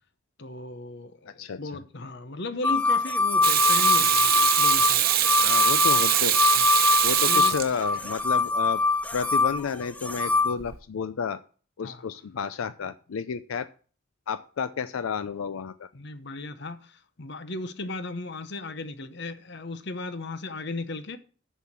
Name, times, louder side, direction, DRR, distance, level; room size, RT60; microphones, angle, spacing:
voice 1, 0.4-4.3 4.6-5.0 6.5-6.6 7.3-7.5 11.8-12.1 15.9-21.2, left 2 dB, 55° left, 0.9 m, -36 dB
sound 1, 2.6-10.5, left 4 dB, 5° left, 0.6 m, -23 dB
Water tap faucet / Sink (filling or washing), 3.4-8.2 10.6-10.7, right 11 dB, 45° right, 0.7 m, -23 dB
voice 2, 5.4-6.4 7.0-8.8 9.1-11.4 11.8-13.7 14.3-15.9, left 6 dB, 85° left, 0.4 m, -31 dB
6.8 x 6.4 x 7.3 m
head